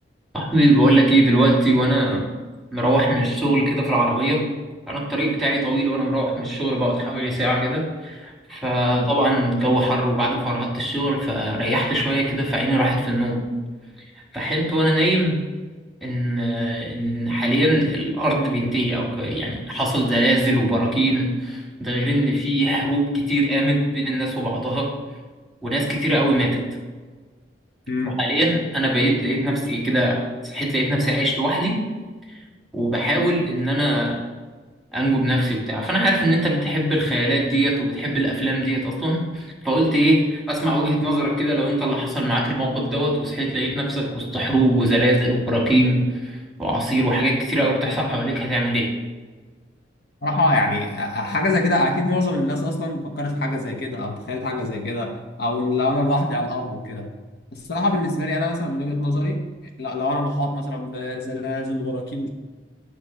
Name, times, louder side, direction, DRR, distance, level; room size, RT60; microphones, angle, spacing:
voice 1, 0.3-2.3 2.7-4.4 4.9-13.5 14.3-15.4 16.0-24.9 25.6-26.6 28.2-31.8 32.7-34.2 34.9-48.9, right 1 dB, ahead, -2 dB, 1.7 m, -21 dB
voice 2, 8.8-9.1 27.9-28.3 50.2-57.1 57.5-59.5 59.8-62.3, left 1 dB, 65° left, 2 dB, 0.9 m, -24 dB
9.6 x 3.2 x 6.1 m, 1.4 s
head